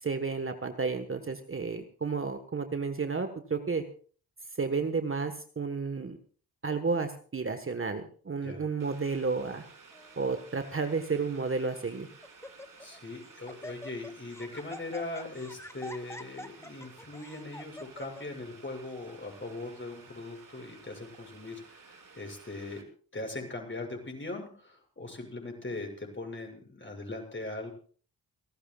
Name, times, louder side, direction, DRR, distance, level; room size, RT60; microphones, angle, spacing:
voice 1, 0.0-3.8 4.6-6.2 6.6-9.6 10.2-12.1, right 4 dB, 35° right, 7 dB, 1.5 m, -32 dB
Boiling, 8.8-22.8, right 4 dB, 55° right, 3.6 m, -54 dB
Laughter, 9.9-10.3 11.1-11.2 11.7-11.9 12.2-13.0 13.2-18.3, left 1 dB, 5° left, 1.0 m, -46 dB
voice 2, 12.8-22.8 23.1-27.7, left 2 dB, 30° left, 2 dB, 7.0 m, -40 dB
30.0 x 12.5 x 2.4 m, 0.42 s
cardioid pair, 60°, 39 cm